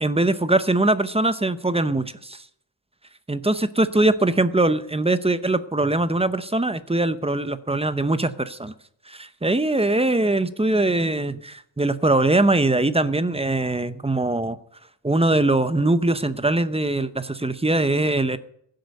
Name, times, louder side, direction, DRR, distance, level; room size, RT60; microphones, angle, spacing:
voice 1, 0.0-2.4 3.3-8.7 9.1-14.6 15.0-18.4, right 2 dB, 15° right, 13 dB, 0.7 m, -22 dB
16.0 x 7.8 x 8.3 m, 0.69 s
wide cardioid pair, 135°, 44 cm